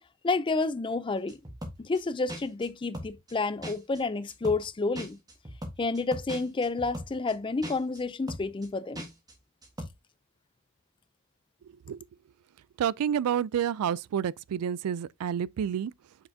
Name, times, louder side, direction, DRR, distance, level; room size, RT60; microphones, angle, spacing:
voice 1, 0.2-1.4 1.8-5.2 5.8-9.1, left 3 dB, 20° left, 0.4 m, -30 dB
sound 1, 1.3-2.0 2.3-2.7 2.9-3.3 3.6-4.0 4.3-4.7 4.9-7.3 7.6-8.0 8.3-8.7 8.9-9.3 9.6-9.9, equal, 15° right, 1.4 m, -40 dB
voice 2, 11.6-12.1 12.8-15.9, right 8 dB, 85° right, 0.3 m, -29 dB
6.7 x 5.6 x 2.7 m
head